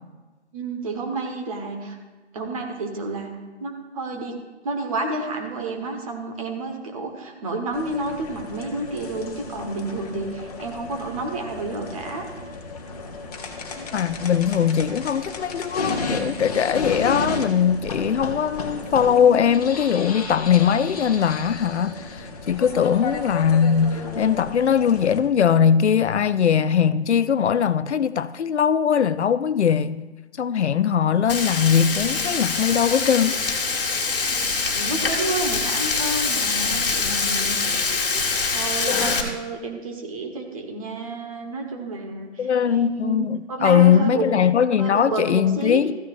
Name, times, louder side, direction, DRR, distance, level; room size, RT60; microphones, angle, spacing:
voice 1, 0.5-2.0 2.3-3.3 3.6-4.3 4.6-12.3 34.7-37.6 38.5-44.4 44.8-45.8, right 2 dB, 30° right, 1.3 m, -30 dB
sound 1, 7.7-25.2, left 3 dB, 35° left, 1.1 m, -33 dB
voice 2, 13.9-30.1 30.4-33.4 42.4-46.0, left 8 dB, 75° left, 0.5 m, -20 dB
Frying (food), 31.3-39.2, left 4 dB, 50° left, 1.6 m, -24 dB
14.0 x 9.5 x 2.5 m
figure-of-eight pair, 150°, 34 cm